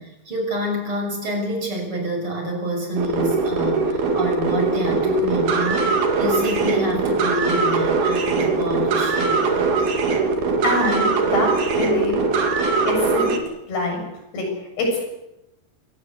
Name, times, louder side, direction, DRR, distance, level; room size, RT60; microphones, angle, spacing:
voice 1, 0.0-9.7, equal, 30° right, 2 dB, 7.3 m, -27 dB
sound 1, 3.0-13.4, right 4 dB, 65° right, 4.2 m, -21 dB
voice 2, 10.6-12.2 12.9-13.3 13.7-14.0 14.3-15.1, left 2 dB, 75° left, 2 dB, 9.5 m, -24 dB
26.0 x 18.5 x 8.1 m, 0.87 s
omnidirectional pair, 4.7 m